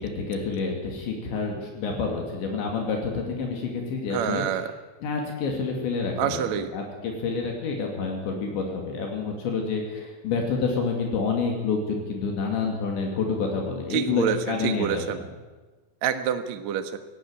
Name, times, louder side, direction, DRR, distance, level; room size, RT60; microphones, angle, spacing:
voice 1, 0.0-4.6 5.0-15.3, left 4 dB, 70° left, 1 dB, 4.8 m, -28 dB
voice 2, 4.1-4.7 6.2-6.7 13.9-15.2 16.0-17.0, right 9 dB, 70° right, 8 dB, 1.7 m, -27 dB
18.0 x 16.0 x 9.0 m, 1.3 s
omnidirectional pair, 5.4 m